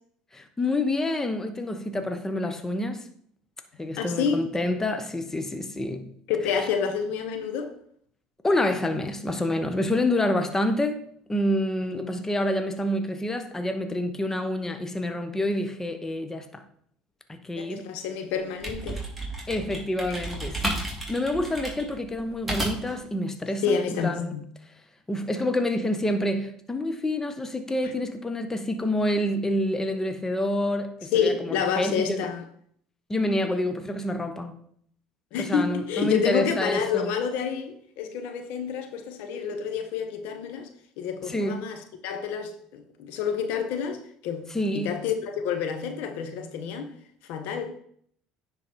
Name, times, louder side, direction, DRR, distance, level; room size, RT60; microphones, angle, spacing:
voice 1, 0.3-3.1 3.8-6.0 6.5-6.7 8.4-11.0 11.3-16.6 17.3-17.8 19.5-20.8 21.1-24.3 25.1-32.3 33.1-34.6 35.4-37.1 41.3-41.7 44.5-44.9, left 1 dB, 15° left, 0.9 m, -28 dB
voice 2, 4.0-4.4 6.3-7.7 17.6-19.0 23.6-24.5 31.1-32.4 35.3-40.7 41.0-44.5 44.7-46.9 47.3-47.7, left 6 dB, 70° left, 1.0 m, -28 dB
sound 1, 18.3-23.0, right 1 dB, 5° right, 2.8 m, -32 dB
9.8 x 4.0 x 4.5 m
hypercardioid pair, 80°, 3 cm